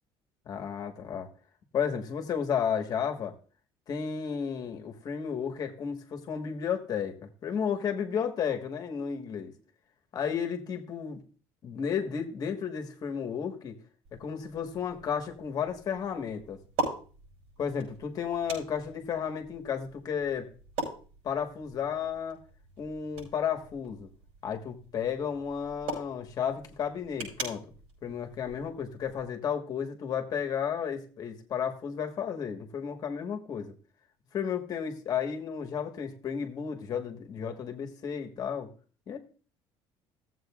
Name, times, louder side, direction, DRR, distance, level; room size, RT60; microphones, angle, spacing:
voice 1, 0.4-1.3 1.7-3.3 3.9-9.5 10.1-11.2 11.6-13.8 14.1-16.6 17.6-20.5 21.2-22.4 22.8-24.1 24.4-27.6 28.0-33.7 34.3-38.7 39.1-39.2, left 7 dB, 40° left, 5 dB, 1.4 m, -33 dB
sound 1, 14.0-29.2, right 2 dB, 80° right, 6.0 m, -42 dB
17.0 x 7.8 x 2.4 m, 0.38 s
cardioid pair, 145°, 10 cm